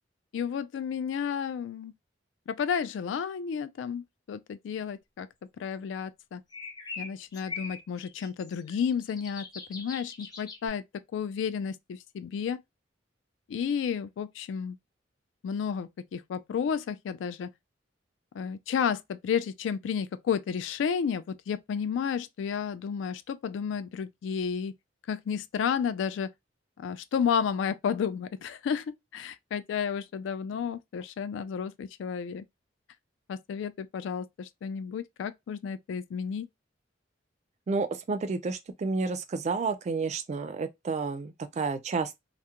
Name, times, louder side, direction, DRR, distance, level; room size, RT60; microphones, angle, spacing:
voice 1, 0.3-1.9 2.5-5.3 5.6-6.4 7.0-9.4 9.7-10.8 11.1-12.6 13.5-14.8 15.4-17.5 18.3-24.7 25.1-26.3 26.8-32.4 33.3-36.5, left 7 dB, 75° left, 0.3 m, -32 dB
sound 1, 6.5-10.7, left 4 dB, 20° left, 0.6 m, -41 dB
voice 2, 37.7-42.2, right 4 dB, 40° right, 0.3 m, -30 dB
2.3 x 2.0 x 2.8 m
head